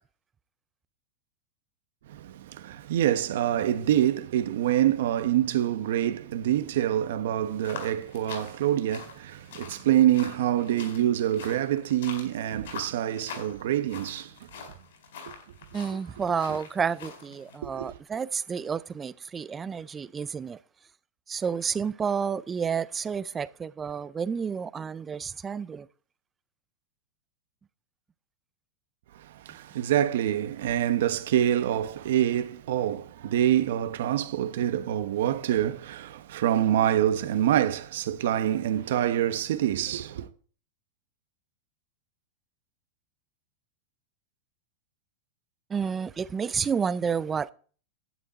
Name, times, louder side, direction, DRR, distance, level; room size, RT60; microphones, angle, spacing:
voice 1, 2.1-14.3 17.8-17.9 29.5-40.3, right 11 dB, 70° right, 1.1 m, -26 dB
sound 1, 7.6-17.6, left 6 dB, 80° left, 4.4 m, -44 dB
voice 2, 15.7-20.6 21.3-25.9 45.7-47.5, right 6 dB, 15° right, 0.4 m, -30 dB
11.0 x 8.9 x 4.2 m
supercardioid pair, 155°, 0 cm